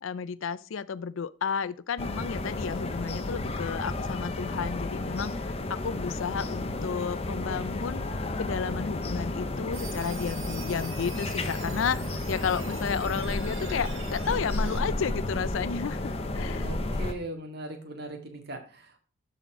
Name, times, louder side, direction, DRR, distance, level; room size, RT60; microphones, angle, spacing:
voice 1, 0.0-8.0 8.4-12.0 12.3-16.7, left 6 dB, 65° left, 0.4 m, -32 dB
sound 1, 2.0-17.1, left 2 dB, 30° left, 0.7 m, -32 dB
sound 2, 9.7-14.8, right 5 dB, 75° right, 1.7 m, -44 dB
voice 2, 16.6-19.0, right 1 dB, 50° right, 1.9 m, -39 dB
13.0 x 4.3 x 4.7 m
head